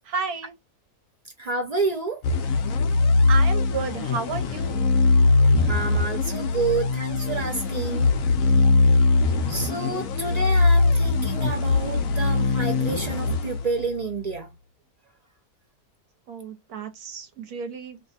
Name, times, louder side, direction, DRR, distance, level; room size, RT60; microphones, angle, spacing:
voice 1, 0.0-0.5 3.3-4.8 9.6-10.1 16.3-18.0, right 5 dB, 80° right, 1.3 m, -32 dB
voice 2, 1.4-2.2 5.7-8.1 9.5-14.5, right 3 dB, 50° right, 0.5 m, -29 dB
sound 1, 2.2-14.1, left 3 dB, 70° left, 1.0 m, -21 dB
3.1 x 2.1 x 4.1 m
omnidirectional pair, 1.6 m